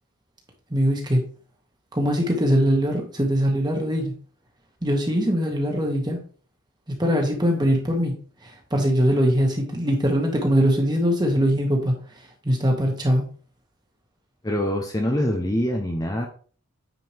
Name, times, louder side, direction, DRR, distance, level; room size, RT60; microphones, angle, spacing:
voice 1, 0.7-1.2 1.9-4.1 4.8-6.2 7.0-8.1 8.7-11.9 12.4-13.3, equal, 20° right, 1 dB, 1.8 m, -21 dB
voice 2, 14.4-16.2, left 1 dB, 15° left, 2 dB, 0.8 m, -24 dB
9.3 x 5.0 x 3.5 m, 0.41 s
head